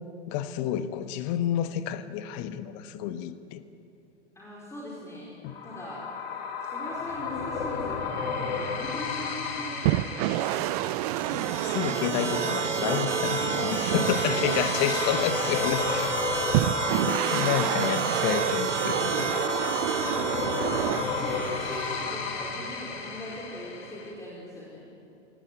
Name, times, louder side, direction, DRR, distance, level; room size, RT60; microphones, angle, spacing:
voice 1, 0.3-3.6 5.4-5.5 11.3-16.2 17.0-19.4, left 11 dB, 40° left, 12 dB, 1.3 m, -30 dB
voice 2, 4.3-5.3 5.6-6.0 6.6-10.8 14.6-15.5 17.8-18.6 19.8-24.9, left 1 dB, 10° left, -5 dB, 4.8 m, -41 dB
sound 1, 5.5-24.1, left 5 dB, 55° left, 3.5 m, -34 dB
sound 2, 9.8-15.8 16.5-21.0, right 17 dB, 35° right, 0.5 m, -29 dB
sound 3, 11.0-22.2, right 3 dB, 85° right, 1.4 m, -31 dB
27.5 x 17.0 x 9.3 m, 2.8 s
figure-of-eight pair, 95°, 35 cm